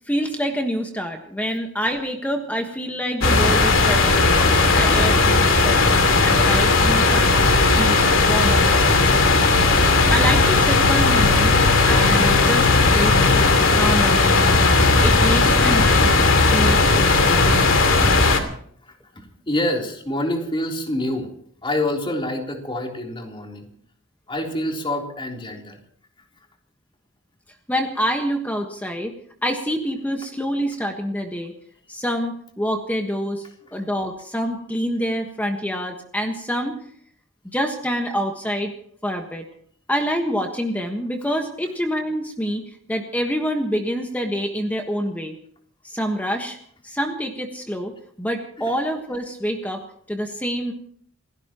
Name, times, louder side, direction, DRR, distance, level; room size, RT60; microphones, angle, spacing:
voice 1, 0.1-9.2 10.1-11.5 11.8-12.7 12.9-14.6 15.0-16.1 16.4-17.5 27.7-29.1 29.4-31.5 31.9-33.4 33.7-36.8 37.4-38.7 39.0-39.4 39.9-45.4 45.8-46.6 46.8-50.7, equal, 10° left, 3 dB, 1.4 m, -27 dB
sound 1, 3.2-18.4, left 3 dB, 80° left, 2.6 m, -16 dB
voice 2, 18.9-21.3 21.6-23.7 24.3-25.8 33.7-33.8, left 1 dB, 25° left, 1 dB, 3.5 m, -27 dB
28.5 x 16.5 x 3.0 m, 0.63 s
head